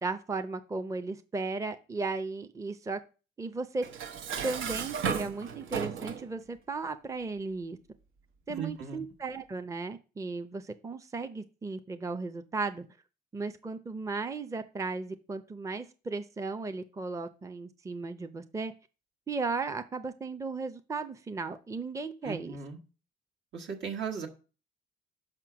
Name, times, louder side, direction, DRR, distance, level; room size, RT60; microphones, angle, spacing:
voice 1, 0.0-3.0 3.4-3.8 4.4-7.8 8.5-12.9 13.3-18.7 19.3-22.6, right 3 dB, 15° right, 9 dB, 0.6 m, -35 dB
Dishes pots and pans, 3.8-6.3, right 7 dB, 85° right, 0.9 m, -34 dB
voice 2, 8.5-9.0 22.2-22.8 23.5-24.3, right 6 dB, 65° right, 2 dB, 1.5 m, -37 dB
5.6 x 4.4 x 6.0 m, 0.34 s
cardioid pair, 90°, 20 cm